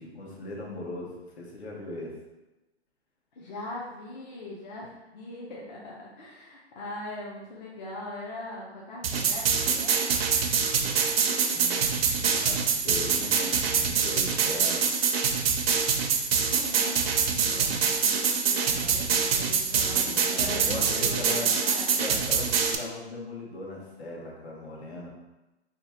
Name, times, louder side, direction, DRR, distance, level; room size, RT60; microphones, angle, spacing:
voice 1, 0.0-2.1 11.5-14.8 20.2-21.5 22.0-25.1, left 2 dB, 70° left, -3 dB, 1.3 m, -38 dB
voice 2, 3.3-10.0 16.4-22.0, left 1 dB, 40° left, -5 dB, 0.6 m, -41 dB
sound 1, 9.0-22.7, right 6 dB, 60° right, 0.5 m, -25 dB
2.9 x 2.4 x 4.3 m, 1.0 s
hypercardioid pair, 155°, 34 cm